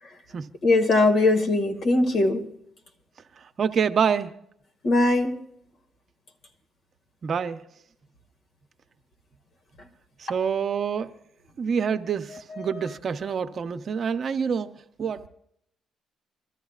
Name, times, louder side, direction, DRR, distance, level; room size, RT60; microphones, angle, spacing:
voice 1, 0.6-2.5 4.8-5.3, left 2 dB, 60° left, 2.0 m, -20 dB
voice 2, 3.6-4.3 7.2-7.6 10.2-11.1 11.6-14.7 15.0-15.3, right 7 dB, 50° right, 0.8 m, -26 dB
26.5 x 13.5 x 2.4 m
cardioid pair, 90°, 0 cm